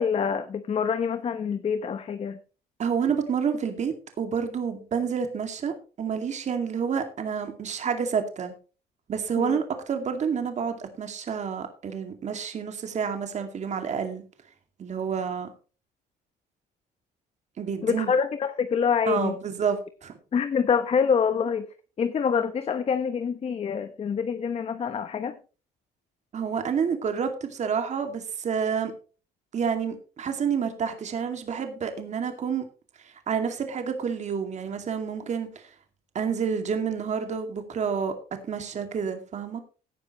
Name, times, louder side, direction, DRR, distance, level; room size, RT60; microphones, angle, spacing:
voice 1, 0.0-2.4 9.4-9.6 17.8-19.4 20.3-21.7 22.0-25.4, left 6 dB, 35° left, 1.0 m, -26 dB
voice 2, 2.8-8.5 9.1-14.2 14.8-15.5 17.6-18.1 19.1-20.2 26.3-28.9 29.5-32.6 33.0-35.7 36.1-38.1 38.5-39.6, right 6 dB, 45° right, 2.3 m, -29 dB
16.5 x 10.0 x 3.1 m
cardioid pair, 110°, 17 cm